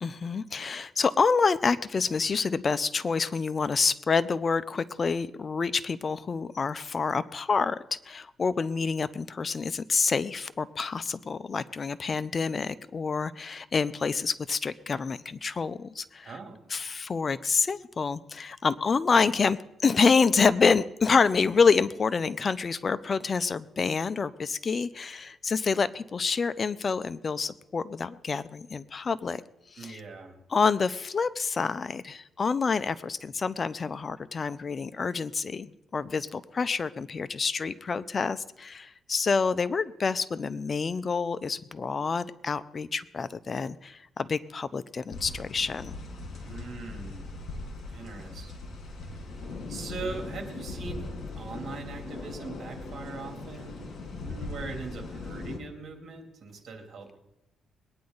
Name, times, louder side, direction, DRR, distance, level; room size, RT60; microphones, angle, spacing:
voice 1, 0.0-16.3 16.7-29.4 29.7-30.0 30.5-45.9, left 5 dB, 40° left, 15 dB, 0.5 m, -27 dB
voice 2, 16.2-16.6 29.8-30.4 46.4-47.3 47.9-48.7 49.1-49.4 49.7-51.1 51.3-53.9 54.2-57.2, right 3 dB, 55° right, 3 dB, 2.9 m, -41 dB
sound 1, 45.1-55.6, left 3 dB, 60° left, 3.7 m, -39 dB
22.0 x 9.6 x 3.9 m, 0.87 s
cardioid pair, 100°, 0 cm